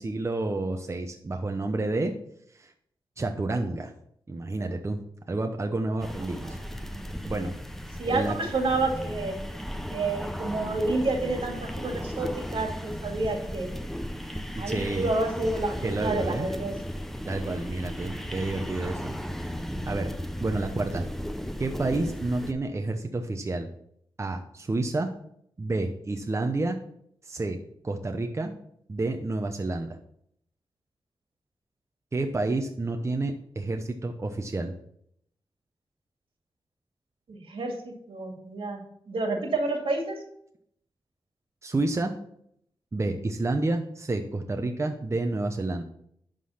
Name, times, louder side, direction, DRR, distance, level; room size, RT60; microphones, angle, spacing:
voice 1, 0.0-2.1 2.6-2.7 3.2-3.9 4.3-5.0 5.3-6.6 7.3-7.5 8.0-8.3 14.5-15.1 15.8-16.5 17.3-19.1 19.9-20.1 20.4-21.1 21.6-23.7 24.2-25.1 25.6-26.8 27.2-27.6 27.8-28.5 28.9-30.0 32.1-34.7 41.6-42.1 42.9-45.8, right 2 dB, 30° right, 4 dB, 0.8 m, -29 dB
sound 1, 6.0-22.5, equal, 5° left, 0.7 m, -35 dB
voice 2, 6.4-7.0 8.0-9.4 9.9-13.7 14.6-16.7 37.3-40.2, right 2 dB, 80° right, 2 dB, 2.2 m, -29 dB
11.5 x 3.9 x 5.7 m, 0.71 s
wide cardioid pair, 90°, 9 cm